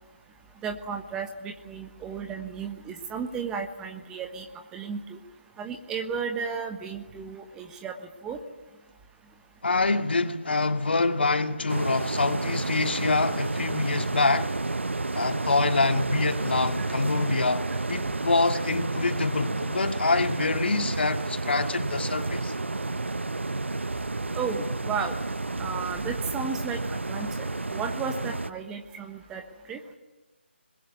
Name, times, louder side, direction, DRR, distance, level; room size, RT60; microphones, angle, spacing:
voice 1, 0.6-4.5 4.7-5.2 5.6-8.0 8.2-8.4 16.8-16.9 24.3-25.2 25.6-29.8, right 6 dB, 10° right, 1.2 m, -34 dB
voice 2, 9.6-14.5 15.1-22.5, left 3 dB, 65° left, 2.1 m, -26 dB
sound 1, 11.7-28.5, right 2 dB, 85° right, 0.8 m, -31 dB
22.5 x 21.0 x 9.6 m
figure-of-eight pair, 155°, 6 cm